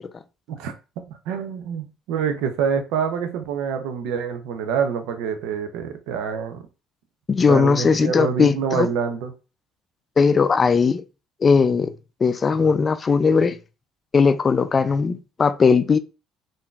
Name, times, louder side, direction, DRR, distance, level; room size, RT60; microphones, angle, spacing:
voice 1, 0.5-6.6 7.5-9.3, right 7 dB, 75° right, 0.5 m, -26 dB
voice 2, 7.3-8.9 10.2-11.0 11.4-11.9 12.2-13.6 14.1-16.0, left 5 dB, 35° left, 0.3 m, -18 dB
3.6 x 2.6 x 2.3 m
hypercardioid pair, 60°, 0 cm